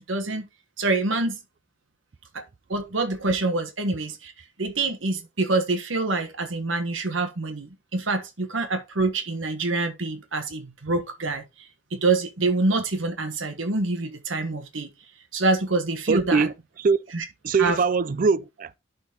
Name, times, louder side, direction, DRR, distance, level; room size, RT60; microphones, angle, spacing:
voice 1, 0.1-0.5 0.8-1.4 2.3-2.4 2.7-4.3 4.6-11.4 11.9-14.9 15.3-16.5 17.1-17.2 17.6-17.8, right 3 dB, 90° right, 1.5 m, -26 dB
voice 2, 16.1-17.0 17.4-18.7, right 5 dB, 45° right, 0.4 m, -22 dB
11.5 x 4.3 x 4.1 m
head